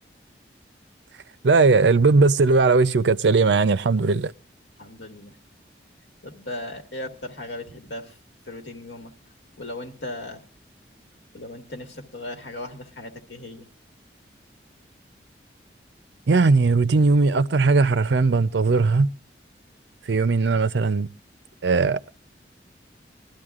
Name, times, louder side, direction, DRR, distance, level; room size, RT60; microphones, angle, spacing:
voice 1, 1.4-4.3 16.3-19.1 20.1-21.1 21.6-22.1, right 3 dB, 80° right, 0.5 m, -19 dB
voice 2, 4.8-5.3 6.2-8.2 8.5-9.1 9.6-10.4 11.3-13.7, left 1 dB, 80° left, 1.9 m, -37 dB
21.5 x 13.0 x 2.4 m
head